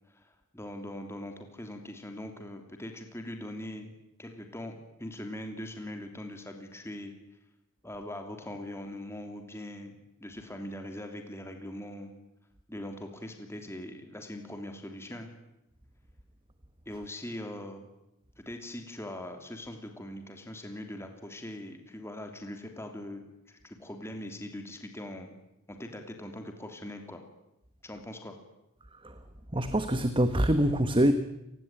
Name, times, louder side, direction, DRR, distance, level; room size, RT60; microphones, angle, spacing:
voice 1, 0.1-3.9 4.2-7.1 7.8-12.1 12.7-15.3 16.9-17.9 18.4-25.3 25.7-27.2 27.8-28.3, left 1 dB, 10° left, 5 dB, 3.0 m, -41 dB
voice 2, 29.5-31.1, right 1 dB, 20° right, 10 dB, 1.3 m, -24 dB
29.0 x 20.0 x 9.0 m, 0.86 s
head